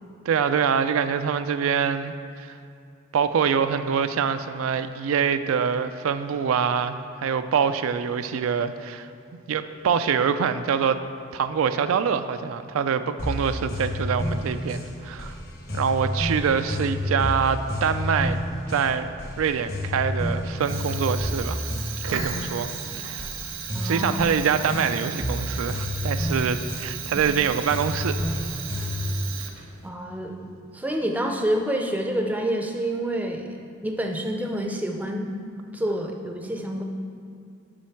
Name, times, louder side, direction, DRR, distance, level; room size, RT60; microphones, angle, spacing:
voice 1, 0.3-2.6 3.1-9.1 9.5-11.0 11.3-15.4 15.7-18.4 18.7-19.1 19.4-21.6 22.0-22.7 22.9-23.3 23.8-28.2, right 6 dB, 85° right, 10 dB, 0.4 m, -25 dB
sound 1, 13.2-29.2, left 1 dB, 50° left, 1.1 m, -30 dB
Fire, 20.6-29.9, right 8 dB, 70° right, 0.8 m, -36 dB
voice 2, 23.7-24.2 29.8-33.6 33.8-35.3 35.7-36.8, right 1 dB, 10° right, 2 dB, 0.5 m, -28 dB
7.5 x 5.2 x 5.7 m, 2.4 s
head